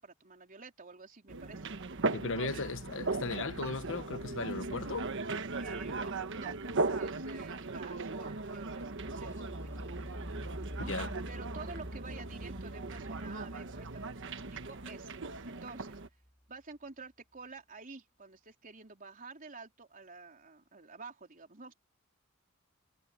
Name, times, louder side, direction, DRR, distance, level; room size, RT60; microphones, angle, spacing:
voice 1, 0.0-2.6 5.5-6.6 6.9-10.2 10.7-10.9 11.3-14.2 14.5-15.1 15.5-16.0 16.5-21.7, right 4 dB, 40° right, 3.8 m, -50 dB
sound 1, 1.3-16.1, right 3 dB, 60° right, 1.3 m, -38 dB
voice 2, 2.1-5.1 10.9-11.1, left 3 dB, 65° left, 1.2 m, -36 dB
sound 2, 8.6-16.3, equal, 15° left, 3.2 m, -46 dB
head